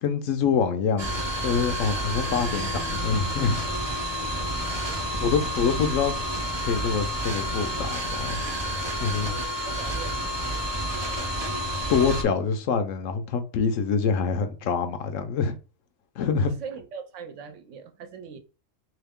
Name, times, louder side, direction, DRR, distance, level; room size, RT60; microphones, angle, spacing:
voice 1, 0.0-3.6 5.2-6.2 6.6-8.4 9.0-9.4 11.9-15.6 16.2-16.5, left 6 dB, 80° left, 1.0 m, -25 dB
sound 1, 1.0-12.2, equal, 30° right, 0.5 m, -29 dB
Bass guitar, 2.2-6.7, left 3 dB, 35° left, 0.6 m, -45 dB
voice 2, 9.2-10.4 11.4-11.5 16.6-18.4, right 6 dB, 70° right, 0.9 m, -41 dB
3.1 x 2.8 x 3.5 m
omnidirectional pair, 1.3 m